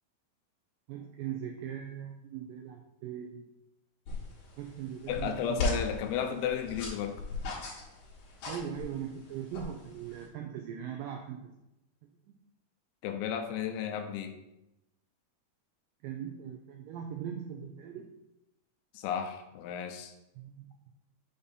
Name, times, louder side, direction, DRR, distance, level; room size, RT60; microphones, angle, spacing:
voice 1, 0.9-3.5 4.6-5.7 8.5-11.5 12.0-12.3 16.0-18.1 20.4-20.7, right 9 dB, 85° right, 3 dB, 2.0 m, -40 dB
sound 1, 4.1-10.3, left 2 dB, 60° left, 2.7 m, -38 dB
voice 2, 5.1-7.2 13.0-14.4 18.9-20.1, left 8 dB, 85° left, 6 dB, 2.6 m, -33 dB
7.0 x 2.7 x 5.1 m, 0.91 s
omnidirectional pair, 4.5 m